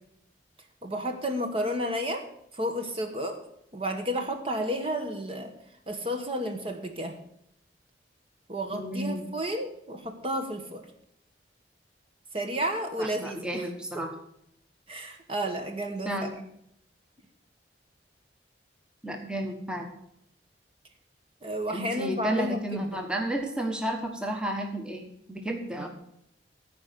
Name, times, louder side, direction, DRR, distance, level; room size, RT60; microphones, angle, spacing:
voice 1, 0.8-2.3 2.5-3.4 3.7-5.5 5.9-7.2 8.5-10.9 12.3-13.7 14.9-16.1 21.4-22.9 25.8-25.9, equal, 30° right, 5 dB, 1.2 m, -31 dB
voice 2, 8.7-9.2 13.0-14.1 16.0-16.3 19.0-19.9 21.7-25.9, right 1 dB, 5° right, 2 dB, 1.2 m, -32 dB
14.0 x 5.1 x 8.1 m, 0.75 s
head